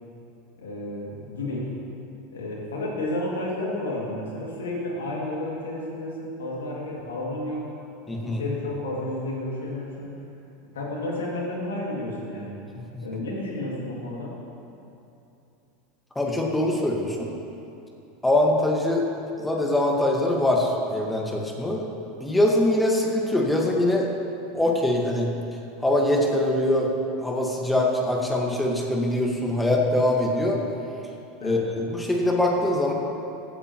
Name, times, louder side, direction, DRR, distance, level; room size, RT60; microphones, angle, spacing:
voice 1, 0.6-1.8 2.3-7.6 8.2-10.1 10.7-12.5 13.0-14.3 31.4-31.6, left 1 dB, 85° left, -3 dB, 2.3 m, -31 dB
voice 2, 8.1-8.4 16.1-17.3 18.2-19.0 19.4-21.8 22.2-24.1 24.5-25.3 25.8-26.9 27.2-30.6 31.4-32.9, left 1 dB, 10° left, -1 dB, 1.6 m, -23 dB
15.5 x 8.5 x 3.0 m, 2.9 s
hypercardioid pair, 90°, 0 cm